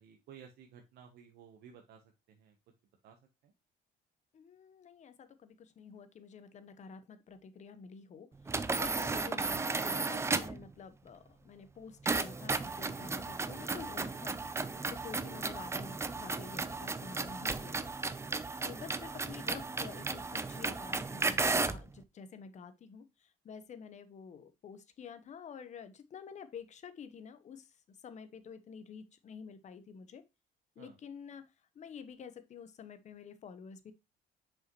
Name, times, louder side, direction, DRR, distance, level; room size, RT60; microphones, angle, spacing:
voice 1, 0.0-2.0 2.3-2.5 3.0-3.2 3.4-3.5 30.8-31.0, right 7 dB, 75° right, 1.0 m, -55 dB
voice 2, 4.3-17.9 18.6-30.2 30.8-33.9, left 6 dB, 45° left, 1.0 m, -49 dB
sound 1, 8.5-10.6 12.1-21.9, right 3 dB, 15° right, 0.5 m, -34 dB
6.2 x 5.1 x 3.0 m
cardioid pair, 110°, 17 cm